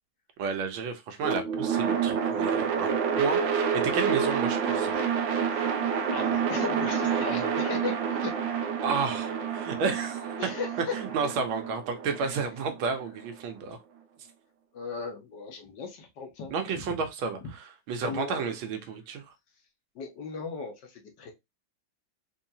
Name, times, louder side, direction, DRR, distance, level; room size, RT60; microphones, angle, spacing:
voice 1, 0.4-4.9 7.4-7.5 8.8-10.2 11.0-13.8 16.5-17.4 17.9-19.2, right 5 dB, 90° right, 1.6 m, -31 dB
sound 1, 1.2-13.3, right 6 dB, 75° right, 1.4 m, -28 dB
voice 2, 5.5-5.8 6.1-7.9 8.2-8.3 10.4-10.9 12.2-12.4 14.7-17.1 17.4-17.5 18.0-18.5 19.9-21.3, left 5 dB, 65° left, 1.5 m, -37 dB
4.5 x 2.8 x 2.7 m
omnidirectional pair, 2.1 m